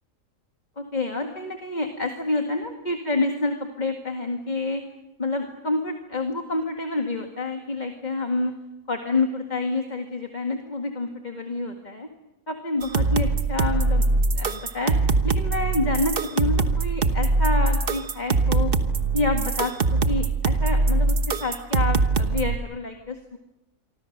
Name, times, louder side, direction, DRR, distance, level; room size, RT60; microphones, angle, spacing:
voice 1, 0.8-4.8 5.2-8.5 8.9-12.1 12.5-14.1 14.3-14.9 15.2-18.7 19.1-23.4, left 3 dB, 35° left, 3 dB, 2.0 m, -28 dB
sound 1, 12.8-22.6, right 3 dB, 45° right, 1.3 m, -22 dB
27.5 x 24.5 x 6.7 m, 0.96 s
omnidirectional pair, 1.4 m